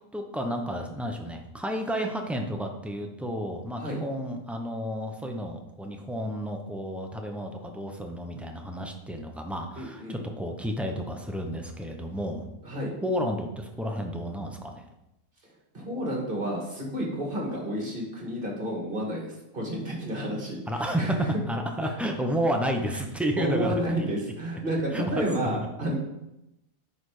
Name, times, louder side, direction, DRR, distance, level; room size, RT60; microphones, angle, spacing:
voice 1, 0.1-12.4 13.0-14.8 20.7-21.1 21.5-23.7 24.9-25.7, equal, ahead, 3 dB, 0.5 m, -31 dB
voice 2, 9.8-10.2 12.6-12.9 15.7-21.3 21.8-21.9 23.4-26.0, right 1 dB, 40° right, -1 dB, 1.9 m, -31 dB
9.7 x 4.2 x 4.9 m, 0.90 s
omnidirectional pair, 1.4 m